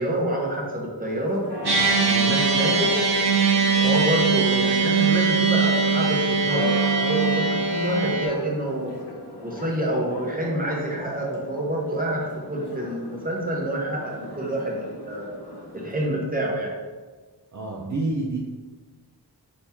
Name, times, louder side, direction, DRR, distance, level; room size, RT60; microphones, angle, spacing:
voice 1, 0.0-1.5 2.1-2.9 3.8-8.9 9.4-15.3 15.7-16.8, right 1 dB, 20° right, -2 dB, 1.1 m, -27 dB
Church bell, 1.1-16.1, left 1 dB, 75° left, 1.1 m, -38 dB
sound 1, 1.6-8.3, right 5 dB, 65° right, 0.9 m, -21 dB
voice 2, 17.5-18.4, right 2 dB, 45° right, -4 dB, 0.6 m, -27 dB
4.3 x 3.2 x 3.4 m, 1.3 s
wide cardioid pair, 40°, 41 cm